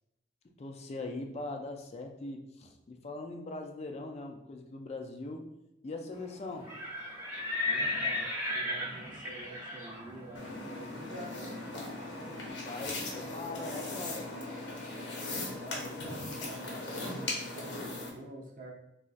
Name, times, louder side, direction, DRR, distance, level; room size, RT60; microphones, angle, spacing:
voice 1, 0.6-5.5 5.8-6.7 12.3-14.3 15.8-16.0, left 2 dB, 35° left, 3 dB, 0.3 m, -41 dB
Livestock farm animals working animals, 6.5-12.4, left 2 dB, 15° right, 0.8 m, -36 dB
voice 2, 7.6-11.5 15.3-18.7, right 1 dB, 50° right, 0 dB, 0.6 m, -48 dB
sound 1, 10.3-18.1, left 2 dB, 80° left, 0.8 m, -39 dB
4.0 x 2.4 x 2.4 m, 0.86 s
head